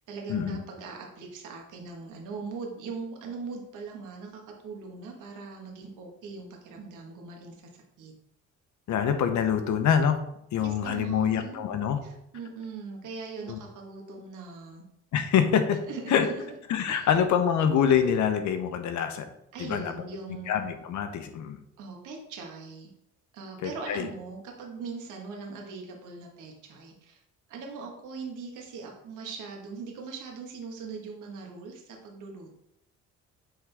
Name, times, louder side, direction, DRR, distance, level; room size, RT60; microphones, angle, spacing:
voice 1, 0.1-7.7 8.0-8.1 10.6-11.6 12.0-14.8 15.8-16.5 16.9-17.1 19.5-20.6 21.8-22.9 23.3-27.2 27.5-32.5, right 4 dB, 85° right, 1 dB, 1.5 m, -40 dB
voice 2, 8.9-10.2 10.5-12.0 13.5-13.6 15.1-15.8 16.1-16.3 16.7-19.3 19.6-19.9 20.5-21.6 23.6-24.1, left 8 dB, 70° left, 8 dB, 0.9 m, -25 dB
7.8 x 3.7 x 3.4 m, 0.78 s
cardioid pair, 90°, 30 cm